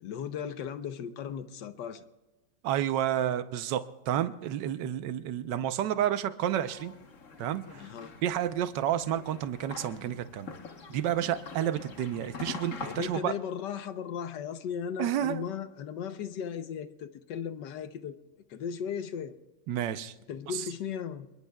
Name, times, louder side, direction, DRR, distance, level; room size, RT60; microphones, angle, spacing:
voice 1, 0.0-2.0 7.7-8.1 12.8-18.2 18.5-19.3 20.3-21.3, left 8 dB, 70° left, 1.4 m, -36 dB
voice 2, 2.6-6.9 7.4-7.8 8.2-10.5 10.9-13.3 15.0-15.5 19.7-20.1, right 11 dB, 70° right, 1.3 m, -30 dB
sound 1, 6.6-13.2, left 4 dB, 45° left, 1.4 m, -45 dB
28.0 x 22.0 x 2.3 m
omnidirectional pair, 2.1 m